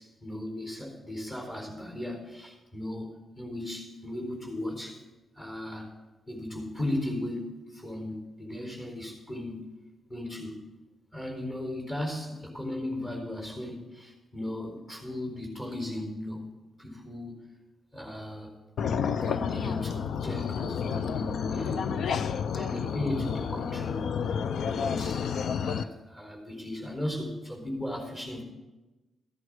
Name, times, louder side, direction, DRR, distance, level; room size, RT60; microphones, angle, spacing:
voice 1, 0.0-5.0 5.4-5.9 6.3-9.7 10.1-10.6 11.1-16.5 16.8-17.4 17.9-18.6 19.2-22.2 22.5-25.2 25.6-28.4, left 1 dB, 25° left, 0 dB, 4.2 m, -36 dB
sound 1, 18.8-25.8, left 7 dB, 70° left, 0.5 m, -30 dB
14.0 x 11.0 x 5.0 m, 1.1 s
cardioid pair, 95°, 0 cm